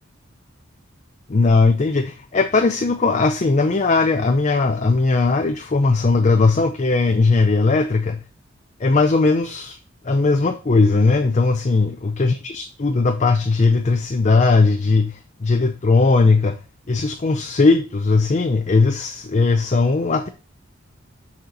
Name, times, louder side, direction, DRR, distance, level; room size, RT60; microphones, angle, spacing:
voice 1, 1.3-8.2 8.8-9.8 10.0-16.6 16.9-20.3, left 3 dB, 35° left, 0.5 m, -18 dB
6.5 x 4.3 x 5.2 m
head